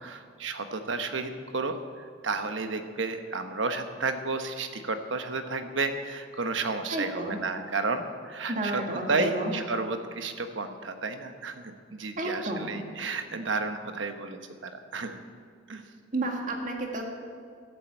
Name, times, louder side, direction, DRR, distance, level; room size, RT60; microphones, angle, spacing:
voice 1, 0.0-15.2 15.7-15.8, right 3 dB, 80° right, 7 dB, 1.0 m, -32 dB
voice 2, 6.9-7.4 8.5-9.5 12.2-12.8 16.1-17.1, right 2 dB, 45° right, 1 dB, 1.9 m, -31 dB
13.0 x 7.8 x 8.7 m, 2.1 s
head